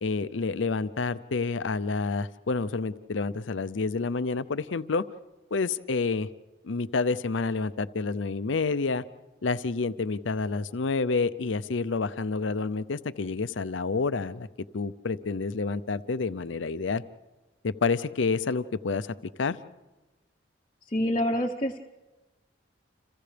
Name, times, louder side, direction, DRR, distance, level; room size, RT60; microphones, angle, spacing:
voice 1, 0.0-5.0 5.5-6.3 6.6-9.0 9.4-14.5 14.7-17.0 17.6-19.6, left 4 dB, 80° left, 14 dB, 0.6 m, -29 dB
voice 2, 20.9-21.8, equal, 30° left, 1 dB, 0.8 m, -26 dB
30.0 x 28.0 x 3.4 m, 1.1 s
head